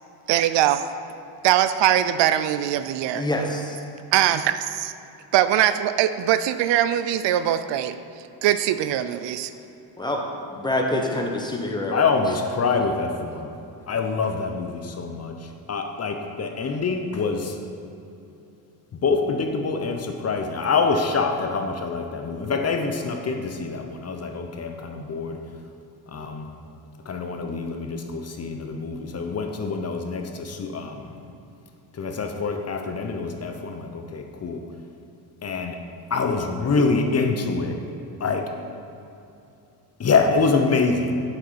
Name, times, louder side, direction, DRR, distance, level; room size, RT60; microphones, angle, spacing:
voice 1, 0.3-0.8 1.4-3.3 4.1-4.9 5.3-8.0 8.4-9.5, right 11 dB, 80° right, 12 dB, 0.5 m, -21 dB
voice 2, 3.1-3.8 10.0-10.2 10.5-12.0 12.3-12.4, left 1 dB, 10° left, 0 dB, 1.1 m, -26 dB
voice 3, 11.9-13.5 13.9-15.3 15.7-17.5 19.0-25.4 26.1-26.5 27.1-31.1 32.0-34.6 35.4-35.8 36.1-37.8 38.2-38.5 40.0-41.2, left 4 dB, 35° left, 5 dB, 0.8 m, -25 dB
8.0 x 6.2 x 5.7 m, 2.8 s
cardioid pair, 115°, 43 cm